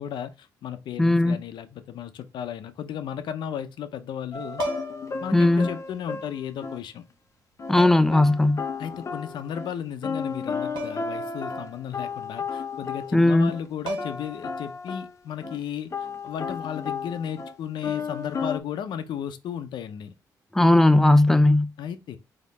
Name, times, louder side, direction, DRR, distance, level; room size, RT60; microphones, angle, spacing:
voice 1, 0.0-4.6 5.2-7.0 8.8-15.9 16.2-20.1 21.8-22.2, left 9 dB, 75° left, 0.6 m, -34 dB
voice 2, 1.0-1.4 5.3-5.7 7.7-8.6 13.1-13.5 20.5-21.7, left 2 dB, 5° left, 0.4 m, -18 dB
sound 1, 4.3-6.8 7.6-7.8 8.1-13.6 14.0-15.2 15.4-15.6 15.9-17.5 17.8-18.6, left 5 dB, 40° left, 0.7 m, -33 dB
sound 2, 4.5-5.2 6.5-6.6 7.8-8.2 10.8-11.2 11.5-11.6 13.4-13.5 13.9-14.4 16.4-16.6, right 3 dB, 80° right, 1.0 m, -35 dB
4.2 x 2.9 x 4.0 m
cardioid pair, 75°, 8 cm